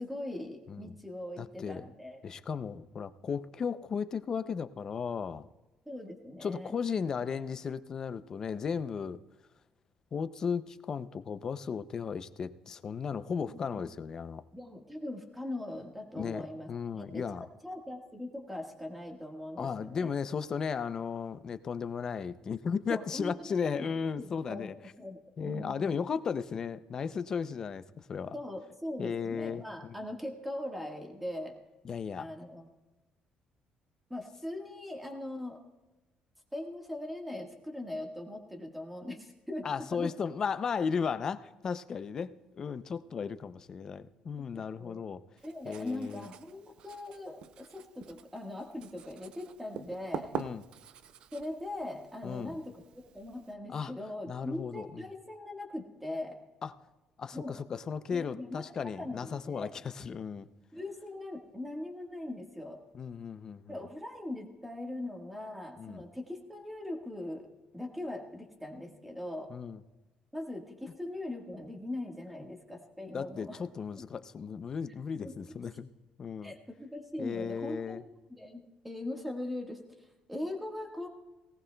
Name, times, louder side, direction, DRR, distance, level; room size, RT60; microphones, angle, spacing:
voice 1, 0.0-2.2 5.8-6.7 13.5-13.8 14.5-17.2 17.6-20.1 22.9-24.7 25.0-26.0 28.3-31.6 32.2-32.7 34.1-35.6 36.5-39.7 39.9-40.1 44.5-45.0 45.4-50.3 51.3-56.4 57.3-57.6 58.1-58.6 59.0-59.8 60.7-62.8 63.7-67.5 67.7-69.5 70.3-73.6 75.2-75.4 76.4-78.0 78.3-81.1, left 1 dB, 5° right, 2 dB, 1.4 m, -40 dB
voice 2, 1.4-1.8 2.2-5.5 6.4-9.2 10.1-14.4 16.2-17.4 19.6-24.7 25.4-28.3 29.0-30.0 31.8-32.3 39.6-45.2 45.6-46.3 50.3-50.6 52.2-52.6 53.7-53.9 54.3-55.0 56.6-56.7 57.2-60.5 62.9-63.8 65.8-66.0 69.5-69.8 73.1-75.9 76.2-76.6 77.2-78.0, left 6 dB, 30° left, 13 dB, 0.4 m, -35 dB
Writing, 45.4-53.5, right 8 dB, 50° right, 0.5 m, -46 dB
18.5 x 18.5 x 2.2 m, 1.1 s
cardioid pair, 175°, 2 cm